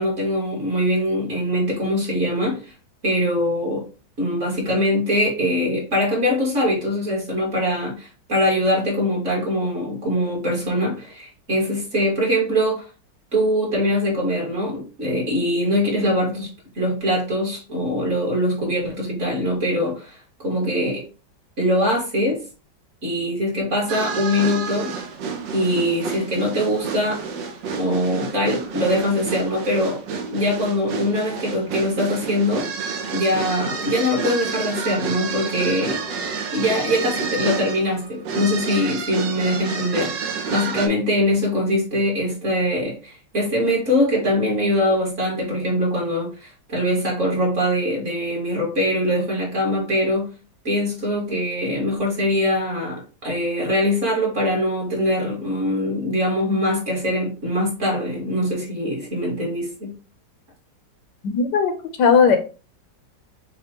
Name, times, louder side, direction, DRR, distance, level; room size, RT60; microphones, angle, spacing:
voice 1, 0.0-2.7 3.0-3.9 4.2-12.9 13.3-16.5 16.8-21.0 21.6-22.4 23.0-25.0 25.5-27.2 27.8-30.0 30.3-32.7 33.1-36.0 36.5-40.1 40.5-50.3 50.6-60.0, equal, 45° right, 2.1 m, -22 dB
sound 1, 23.9-40.9, right 5 dB, 85° right, 1.4 m, -29 dB
voice 2, 61.2-62.4, left 6 dB, 75° left, 1.3 m, -17 dB
6.6 x 2.5 x 2.9 m
omnidirectional pair, 1.9 m